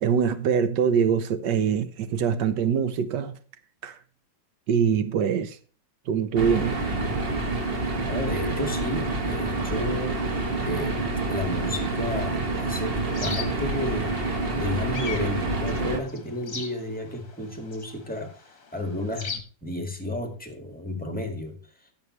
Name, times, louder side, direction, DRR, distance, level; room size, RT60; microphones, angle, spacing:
voice 1, 0.0-3.4 3.8-4.0 4.7-5.6 6.1-6.8, right 7 dB, 60° right, 1.3 m, -24 dB
sound 1, 6.4-16.0, right 2 dB, 30° right, 1.6 m, -27 dB
voice 2, 7.9-11.0 11.3-14.2 14.5-18.3 18.7-21.6, left 1 dB, 5° left, 1.6 m, -32 dB
sound 2, 11.6-19.4, left 5 dB, 40° left, 1.6 m, -41 dB
14.5 x 7.0 x 3.1 m
omnidirectional pair, 2.4 m